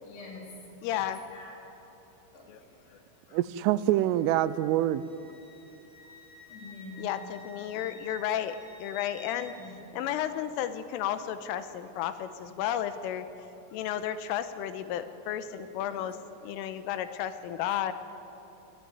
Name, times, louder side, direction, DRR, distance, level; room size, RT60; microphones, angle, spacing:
voice 1, 0.0-0.5 0.8-1.0 1.3-1.6 2.3-3.0 3.3-3.4 4.5-4.7 6.5-7.1 7.6-7.9 9.5-9.7 15.8-16.0, left 2 dB, 55° left, 5.6 m, -47 dB
voice 2, 0.8-1.2 2.5-2.6 3.3-3.4 7.0-9.5 9.9-13.3 13.7-16.2 16.4-17.9, left 10 dB, 85° left, 3.3 m, -33 dB
voice 3, 3.3-5.0, right 13 dB, 85° right, 3.0 m, -25 dB
Wind instrument woodwind instrument, 4.0-9.7, left 1 dB, 25° left, 2.6 m, -52 dB
21.5 x 13.5 x 9.4 m
omnidirectional pair, 5.9 m